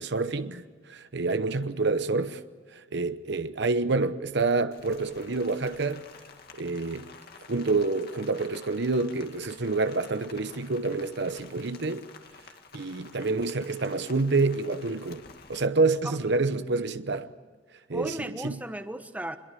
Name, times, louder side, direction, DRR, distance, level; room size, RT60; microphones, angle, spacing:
voice 1, 0.0-2.4 2.7-6.0 6.5-7.1 7.5-12.1 12.7-15.2 15.5-17.3 17.9-18.6, right 3 dB, 65° right, 0.9 m, -28 dB
Rain, 4.7-15.6, left 5 dB, 55° left, 2.1 m, -50 dB
voice 2, 16.0-16.9 17.9-19.4, right 1 dB, 10° right, 1.1 m, -37 dB
26.0 x 21.5 x 6.8 m
head